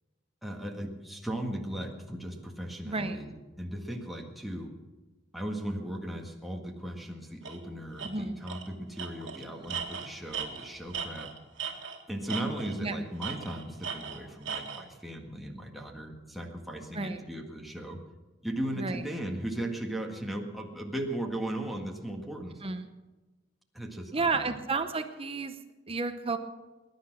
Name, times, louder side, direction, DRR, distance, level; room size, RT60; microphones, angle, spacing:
voice 1, 0.4-4.7 5.3-11.3 12.1-18.0 18.4-22.6 23.7-24.6, right 1 dB, ahead, 1 dB, 1.7 m, -37 dB
voice 2, 2.9-3.2 8.0-8.4 12.8-13.0 16.9-17.2 18.8-19.0 22.6-22.9 24.1-25.5 25.9-26.4, right 3 dB, 30° right, 8 dB, 0.8 m, -31 dB
Tools, 7.4-7.6 8.0-8.1 8.5-8.7 9.0-12.0 12.3-12.8 13.2-14.8, right 6 dB, 70° right, 1.9 m, -37 dB
20.5 x 10.5 x 6.1 m, 1.2 s
head